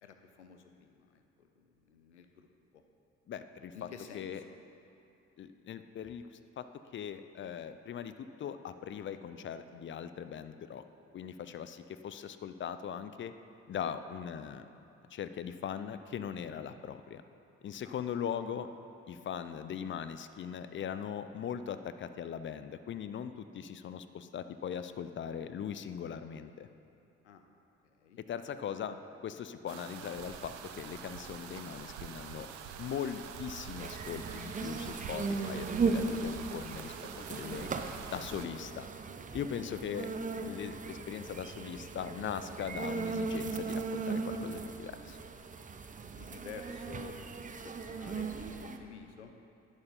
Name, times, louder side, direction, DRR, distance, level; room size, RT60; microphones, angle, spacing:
voice 1, 0.0-2.5 2.7-2.8 3.7-4.6 17.8-18.0 27.2-27.5 27.9-28.2 28.9-29.0 39.7-40.5 46.1-47.2 47.6-49.3, left 5 dB, 90° left, 6 dB, 0.5 m, -51 dB
voice 2, 3.3-3.9 4.1-4.4 5.4-6.3 6.6-6.7 6.9-10.8 11.1-13.3 13.7-14.7 15.1-17.2 17.6-18.7 19.1-26.7 28.2-29.0 29.2-32.5 32.8-36.9 37.3-37.7 38.1-38.9 39.3-40.1 40.4-45.2, left 8 dB, 35° left, 11 dB, 0.5 m, -40 dB
sound 1, 29.7-38.5, right 8 dB, 70° right, 0.6 m, -46 dB
sound 2, 33.8-48.8, right 4 dB, 25° right, 0.6 m, -37 dB
10.5 x 4.9 x 5.5 m, 2.7 s
figure-of-eight pair, 45°, 33 cm